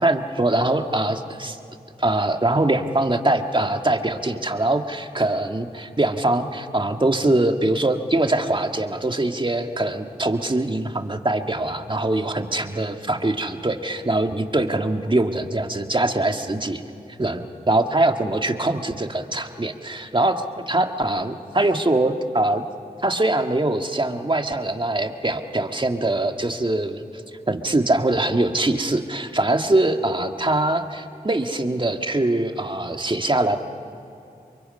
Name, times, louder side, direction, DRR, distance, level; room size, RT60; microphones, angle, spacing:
voice 1, 0.0-1.6 2.0-16.8 17.2-22.6 23.0-27.0 27.5-33.6, right 2 dB, 30° right, 5 dB, 1.8 m, -23 dB
28.5 x 23.5 x 5.5 m, 2.8 s
cardioid pair, 40°, 17 cm